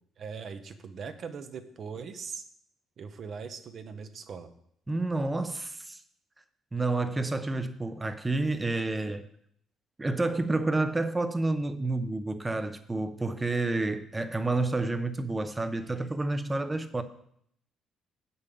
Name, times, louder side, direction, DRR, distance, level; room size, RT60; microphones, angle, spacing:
voice 1, 0.2-2.4 3.0-4.5, right 5 dB, 50° right, 0.8 m, -40 dB
voice 2, 4.9-6.0 6.7-9.2 10.0-17.0, right 2 dB, 15° right, 0.7 m, -29 dB
8.2 x 5.5 x 6.9 m
cardioid pair, 125°, 0 cm